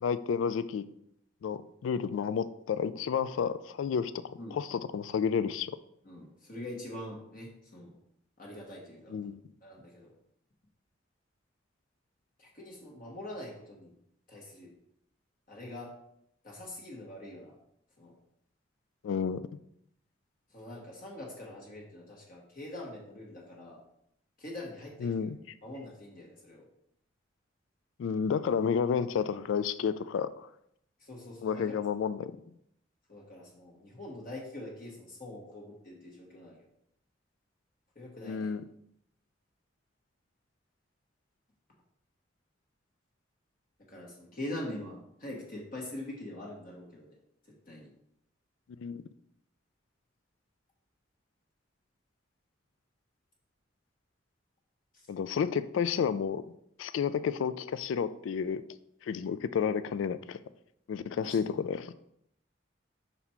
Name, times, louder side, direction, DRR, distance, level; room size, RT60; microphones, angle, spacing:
voice 1, 0.0-0.8 1.4-4.1 4.5-5.7 9.1-9.4 19.0-19.4 25.0-25.4 28.0-30.5 31.4-32.3 38.2-38.6 48.8-49.0 55.1-56.4 56.8-58.6 59.0-60.4 60.9-61.9, left 6 dB, 80° left, 15 dB, 0.3 m, -31 dB
voice 2, 6.0-7.9 8.4-9.2 9.6-10.1 12.4-13.9 14.3-14.7 15.5-15.9 16.4-17.5 18.0-18.1 20.5-23.8 24.4-25.3 25.6-26.6 31.0-31.8 33.1-36.7 37.9-38.5 43.9-47.2 47.7-47.9 54.9-55.0 61.2-61.6, left 1 dB, 45° left, -2 dB, 1.1 m, -44 dB
5.6 x 4.1 x 4.3 m, 0.75 s
head